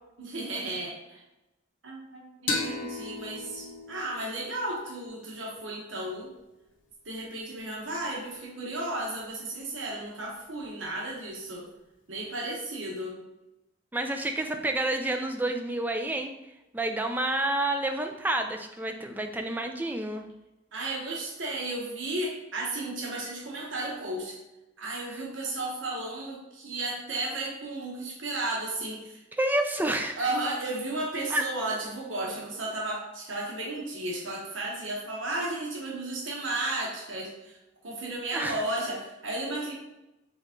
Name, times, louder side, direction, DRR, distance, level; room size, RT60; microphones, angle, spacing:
voice 1, 0.2-1.2 1.8-6.3 7.0-11.6 12.1-13.1 20.7-24.4 24.8-29.2 30.2-37.6 37.8-39.7, right 2 dB, 85° right, -2 dB, 1.1 m, -34 dB
sound 1, 2.5-5.8, left 3 dB, 75° left, 0.9 m, -36 dB
voice 2, 13.9-16.3 16.7-20.3 25.1-25.2 29.3-30.3 31.3-31.5 38.3-38.6, right 1 dB, 10° right, 4 dB, 0.3 m, -29 dB
4.1 x 3.5 x 3.7 m, 0.96 s
head